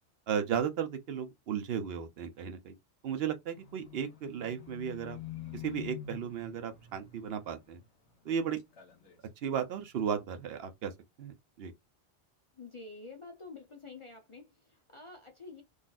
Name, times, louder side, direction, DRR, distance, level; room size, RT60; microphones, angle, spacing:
voice 1, 0.3-2.7 3.0-5.2 5.5-7.8 8.2-8.6 9.4-10.9 11.2-11.7, right 8 dB, 70° right, 0.8 m, -35 dB
Livestock farm animals working animals, 3.5-8.3 8.6-9.3 9.7-9.8, left 11 dB, 65° left, 1.4 m, -47 dB
voice 2, 12.6-15.6, left 3 dB, 40° left, 0.5 m, -48 dB
3.9 x 2.4 x 2.4 m
omnidirectional pair, 1.1 m